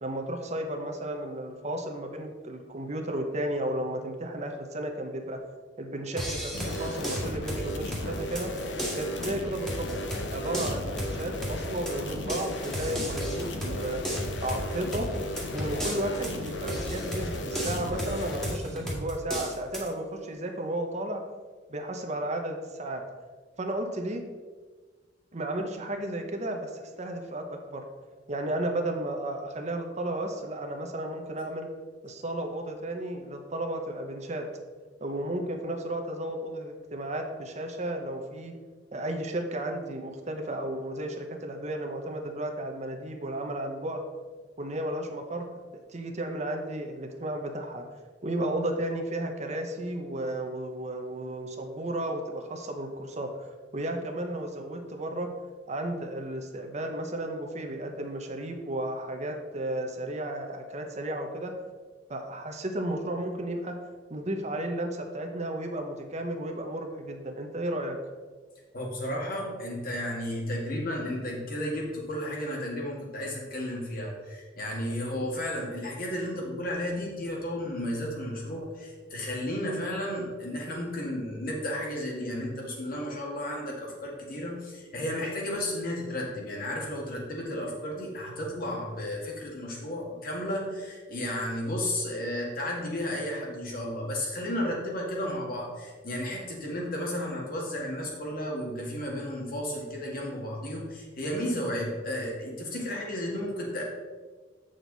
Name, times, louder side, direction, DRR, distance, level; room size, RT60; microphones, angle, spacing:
voice 1, 0.0-5.4 5.8-8.5 8.9-9.9 10.3-14.0 14.4-15.1 15.5-21.2 21.7-23.0 23.6-24.2 25.3-27.8 28.3-31.7 32.0-34.5 35.0-38.5 38.9-44.0 44.6-45.5 45.9-47.8 48.2-53.3 53.7-55.3 55.7-61.5 62.1-63.7 64.1-68.0, right 1 dB, 40° right, 4 dB, 0.8 m, -33 dB
sound 1, 6.2-19.9, equal, 5° left, 1.6 m, -35 dB
sound 2, 6.5-18.6, left 1 dB, 90° left, 0.9 m, -35 dB
voice 2, 68.7-103.8, left 1 dB, 55° left, -2 dB, 1.9 m, -33 dB
7.8 x 6.4 x 4.0 m, 1.4 s
head